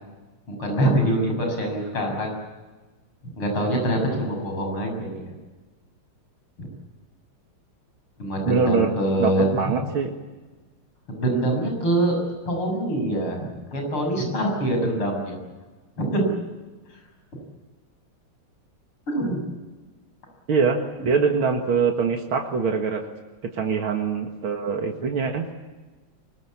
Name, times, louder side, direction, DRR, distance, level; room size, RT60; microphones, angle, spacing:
voice 1, 0.5-2.4 3.4-5.3 6.6-6.7 8.2-9.7 11.1-12.2 12.5-15.4 16.0-16.2 19.1-19.4, right 1 dB, 85° left, 2 dB, 7.9 m, -24 dB
voice 2, 8.5-8.9 9.2-10.1 20.5-23.0 23.5-25.5, right 5 dB, 75° right, 3 dB, 2.6 m, -23 dB
24.0 x 22.0 x 8.6 m, 1.3 s
omnidirectional pair, 2.3 m